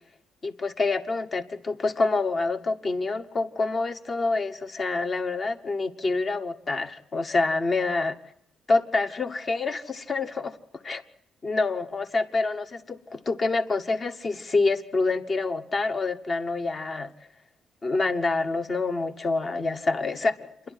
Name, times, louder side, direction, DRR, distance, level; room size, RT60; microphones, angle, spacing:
voice 1, 0.4-8.1 8.7-11.0 11.4-17.1 17.8-20.5, left 3 dB, 25° left, 9 dB, 1.1 m, -27 dB
28.0 x 11.5 x 9.6 m, 0.76 s
cardioid pair, 160°, 0 cm